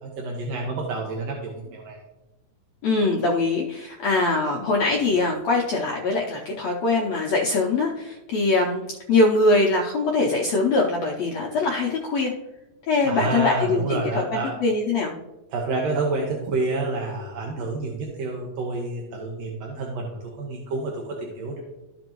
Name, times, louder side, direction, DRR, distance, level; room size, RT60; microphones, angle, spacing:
voice 1, 0.0-2.0 13.0-14.6 15.5-21.6, right 3 dB, 65° right, -1 dB, 1.8 m, -28 dB
voice 2, 2.8-12.3 12.9-15.1, left 3 dB, 80° left, -1 dB, 1.5 m, -22 dB
13.0 x 5.2 x 3.0 m, 1.0 s
omnidirectional pair, 3.9 m